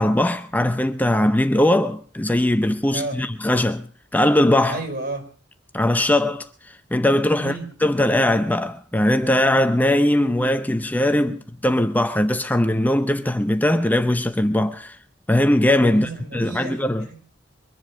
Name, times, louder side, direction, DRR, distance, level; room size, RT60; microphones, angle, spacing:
voice 1, 0.0-3.9 4.1-4.8 5.7-6.5 6.9-15.0 15.3-17.0, left 1 dB, 10° left, 0.7 m, -20 dB
voice 2, 4.7-5.2 7.4-7.7 15.9-17.2, right 3 dB, 55° right, 5.0 m, -32 dB
23.0 x 7.8 x 7.3 m
head